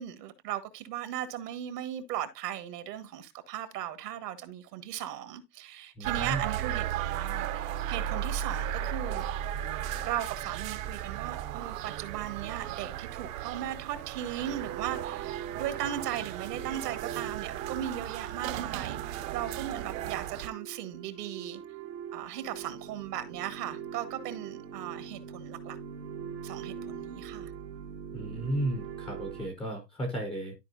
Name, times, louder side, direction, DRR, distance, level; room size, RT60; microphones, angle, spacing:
voice 1, 0.0-9.2 10.0-21.6 22.1-25.8 26.4-27.5, right 11 dB, 70° right, 1.7 m, -37 dB
voice 2, 6.0-6.4 28.1-30.5, right 1 dB, ahead, 0.3 m, -34 dB
sound 1, 6.0-20.5, right 11 dB, 50° right, 0.7 m, -35 dB
sound 2, 14.5-29.5, right 8 dB, 90° right, 1.7 m, -42 dB
12.5 x 4.7 x 2.6 m
hypercardioid pair, 140°, 50 cm